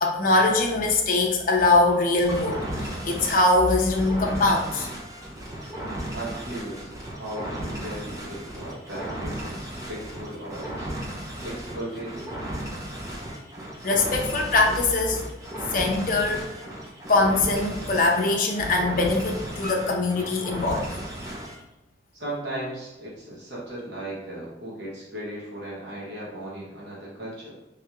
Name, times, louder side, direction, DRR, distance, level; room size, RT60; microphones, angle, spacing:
voice 1, 0.0-4.9 13.8-15.2 15.7-16.4 17.1-20.9, left 2 dB, 45° left, 1 dB, 0.6 m, -22 dB
rhythmic bright burble n glitch, 2.2-21.6, right 1 dB, 15° right, 0.6 m, -35 dB
voice 2, 6.1-10.9 11.4-12.3 22.1-27.5, right 1 dB, 60° right, -6 dB, 1.2 m, -36 dB
3.5 x 3.2 x 3.0 m, 1.0 s
head